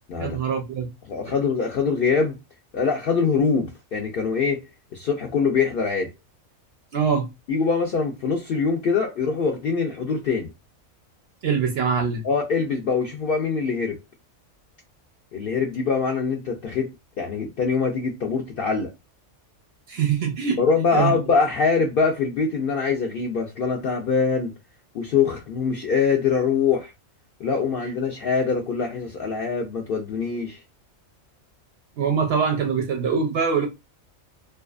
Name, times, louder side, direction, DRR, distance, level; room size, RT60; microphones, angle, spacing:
voice 1, 0.2-0.9 6.9-7.3 11.4-12.3 19.9-20.6 20.9-21.2 32.0-33.7, right 6 dB, 65° right, 0.6 m, -23 dB
voice 2, 1.1-2.4 2.7-4.6 4.9-6.1 7.5-10.5 12.2-14.0 15.3-16.9 17.2-18.9 20.6-24.5 24.9-26.9 27.4-30.6, left 5 dB, 70° left, 0.5 m, -23 dB
2.6 x 2.2 x 2.3 m
omnidirectional pair, 1.4 m